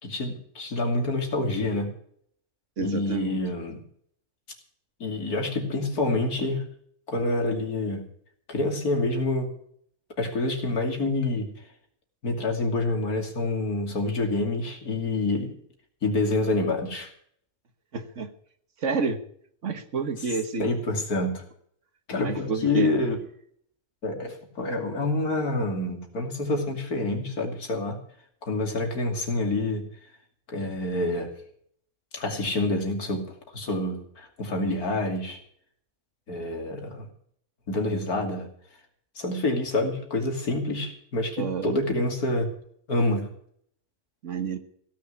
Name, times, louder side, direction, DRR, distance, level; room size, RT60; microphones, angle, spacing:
voice 1, 0.0-1.9 2.8-3.8 5.0-6.6 7.1-8.0 8.5-9.5 10.2-11.5 12.2-15.6 16.0-17.1 20.6-21.4 22.1-23.2 24.0-28.0 28.4-29.9 30.5-31.3 32.1-33.3 33.5-35.4 36.3-37.1 37.7-38.5 39.2-42.5 42.9-43.3, left 2 dB, 75° left, 3 dB, 3.2 m, -27 dB
voice 2, 2.8-3.4 17.9-18.3 18.8-19.2 19.6-20.7 22.2-22.9 41.4-41.7 44.2-44.6, right 5 dB, 55° right, 9 dB, 1.6 m, -29 dB
16.5 x 6.6 x 9.6 m, 0.64 s
omnidirectional pair, 1.6 m